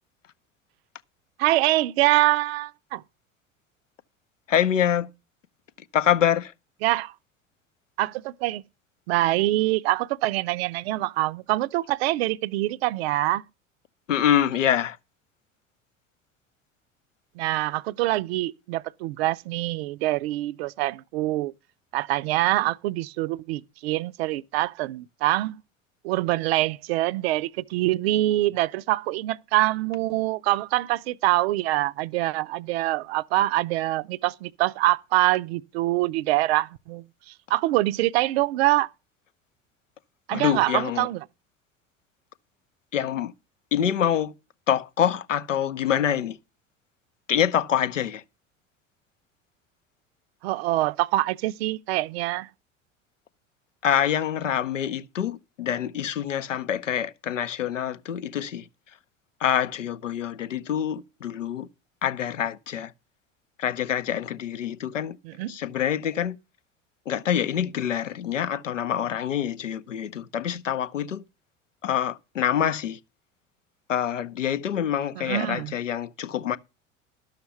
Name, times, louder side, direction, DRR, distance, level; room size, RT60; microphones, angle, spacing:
voice 1, 1.4-3.0 6.8-7.1 8.0-8.6 9.1-13.4 17.4-21.5 21.9-25.6 26.0-38.9 40.3-41.2 50.4-52.5 65.2-65.5 75.2-75.7, right 17 dB, 55° right, 0.5 m, -25 dB
voice 2, 4.5-5.1 5.9-6.5 14.1-15.0 40.3-41.1 42.9-43.3 43.7-44.3 44.7-46.4 47.3-48.2 53.8-58.7 59.4-61.7 62.0-62.9 63.6-65.2 65.5-66.4 67.1-71.2 71.8-73.0 73.9-76.6, left 9 dB, 80° left, 0.6 m, -26 dB
11.5 x 6.6 x 5.7 m
figure-of-eight pair, 70°, 37 cm